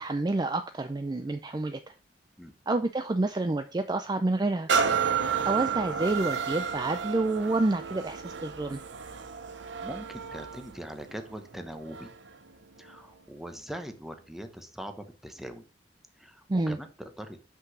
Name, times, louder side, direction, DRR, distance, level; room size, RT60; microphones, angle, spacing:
voice 1, 0.0-1.9 2.7-4.7 5.4-8.8 16.5-16.8, right 2 dB, 25° right, 9 dB, 0.4 m, -28 dB
sound 1, 4.7-12.3 12.9-13.0, right 6 dB, 85° right, 0.8 m, -31 dB
voice 2, 9.5-12.1 12.8-15.7 16.2-17.4, equal, ahead, 7 dB, 0.9 m, -42 dB
5.9 x 5.5 x 5.9 m, 0.37 s
head